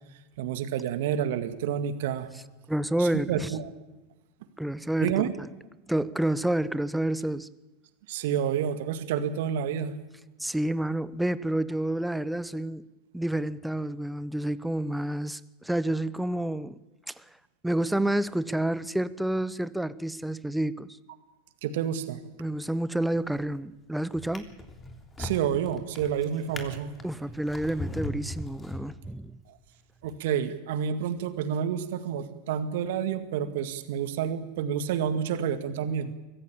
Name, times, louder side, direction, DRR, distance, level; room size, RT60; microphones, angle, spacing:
voice 1, 0.4-2.3 3.0-3.7 5.0-5.3 8.1-9.9 21.6-22.2 25.2-26.9 30.0-36.1, right 8 dB, 65° right, 2.0 m, -29 dB
voice 2, 2.7-3.5 4.6-5.3 5.9-7.5 10.4-12.9 13.1-16.8 17.6-20.9 22.4-24.6 27.0-29.4, right 1 dB, 5° right, 0.9 m, -29 dB
Drawer open or close, 23.2-23.6 24.1-29.3 30.0-30.2, left 1 dB, 20° left, 3.2 m, -39 dB
24.0 x 15.5 x 8.6 m
hypercardioid pair, 85°, 0 cm